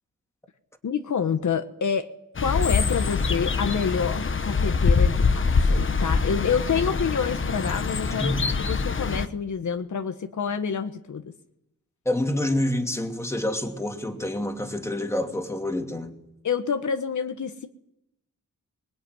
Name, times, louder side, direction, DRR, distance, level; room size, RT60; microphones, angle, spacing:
voice 1, 0.8-2.1 2.4-11.3 16.4-17.7, left 6 dB, 65° left, 7 dB, 1.4 m, -28 dB
sound 1, 2.4-9.3, left 4 dB, 40° left, 1.2 m, -24 dB
voice 2, 12.0-16.1, left 1 dB, 10° left, 3 dB, 2.8 m, -27 dB
25.5 x 20.5 x 9.7 m, 0.85 s
wide cardioid pair, 175°, 32 cm